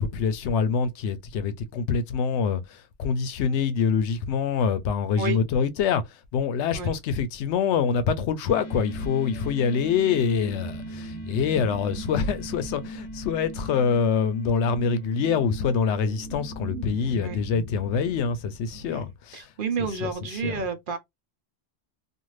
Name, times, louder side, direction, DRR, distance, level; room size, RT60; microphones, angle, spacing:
voice 1, 0.0-19.5 19.8-20.6, left 6 dB, 90° left, 0.9 m, -25 dB
sound 1, 8.5-18.2, right 2 dB, 35° left, 0.6 m, -40 dB
sound 2, 9.1-14.2 15.1-18.9, right 2 dB, 80° right, 1.1 m, -42 dB
voice 2, 17.0-17.4 18.9-19.0 19.3-21.0, right 4 dB, 55° right, 0.7 m, -30 dB
2.5 x 2.5 x 3.1 m
omnidirectional pair, 1.1 m